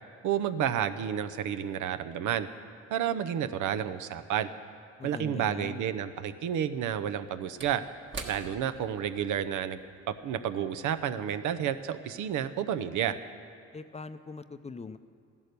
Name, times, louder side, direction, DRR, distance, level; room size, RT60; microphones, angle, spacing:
voice 1, 0.2-2.5 2.9-4.5 5.0-7.8 8.3-9.8 10.1-13.2, right 9 dB, 80° right, 11 dB, 0.7 m, -30 dB
voice 2, 5.0-5.8 13.7-15.0, left 4 dB, 20° left, 11 dB, 0.5 m, -41 dB
Slam / Wood, 6.7-11.4 11.7-11.9, right 3 dB, 40° right, 1.5 m, -47 dB
14.0 x 11.0 x 6.8 m, 2.2 s
cardioid pair, 90°, 30 cm